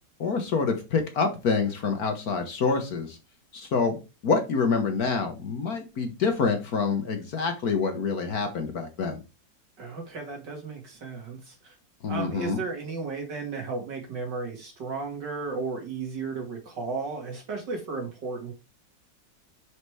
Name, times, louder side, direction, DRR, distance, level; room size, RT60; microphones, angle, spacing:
voice 1, 0.2-3.2 3.5-9.2 12.0-12.6, left 5 dB, 55° left, 6 dB, 1.5 m, -27 dB
voice 2, 9.8-11.7 12.1-18.5, right 4 dB, 65° right, 1 dB, 2.9 m, -34 dB
5.6 x 5.0 x 4.8 m, 0.28 s
omnidirectional pair, 2.0 m